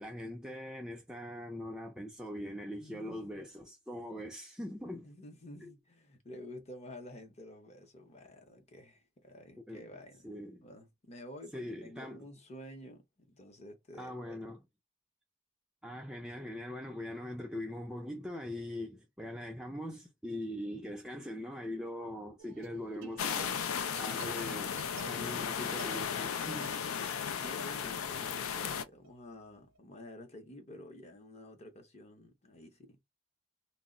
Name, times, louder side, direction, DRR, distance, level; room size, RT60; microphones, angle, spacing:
voice 1, 0.0-5.1 5.6-5.7 9.7-9.8 10.2-10.7 11.5-12.2 14.0-14.6 15.8-24.8 25.0-26.8, left 1 dB, 5° right, 0.3 m, -42 dB
voice 2, 2.8-3.5 5.0-10.3 10.6-14.5 27.4-33.0, left 1 dB, 30° left, 0.6 m, -50 dB
sound 1, 22.4-29.8, right 6 dB, 65° right, 0.5 m, -53 dB
sound 2, 23.2-28.8, left 7 dB, 75° left, 0.4 m, -35 dB
2.2 x 2.0 x 3.6 m
head